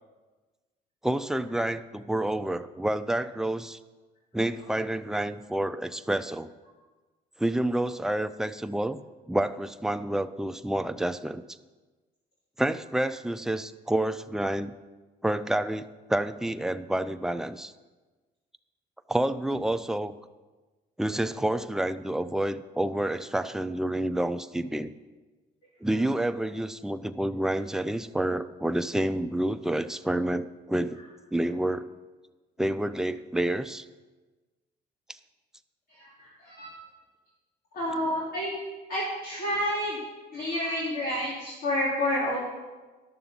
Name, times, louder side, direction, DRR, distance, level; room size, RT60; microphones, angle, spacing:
voice 1, 1.0-3.8 4.3-6.5 7.4-9.0 9.3-11.4 12.6-14.7 15.2-17.7 19.1-20.1 21.0-24.9 25.8-31.0 31.3-31.9 32.6-33.9, right 1 dB, 5° right, 10 dB, 0.4 m, -29 dB
voice 2, 35.9-36.7 37.7-38.6 38.9-40.0 40.3-42.5, left 1 dB, 60° left, -6 dB, 2.6 m, -29 dB
12.0 x 6.8 x 5.5 m, 1.3 s
cardioid pair, 110°, 17 cm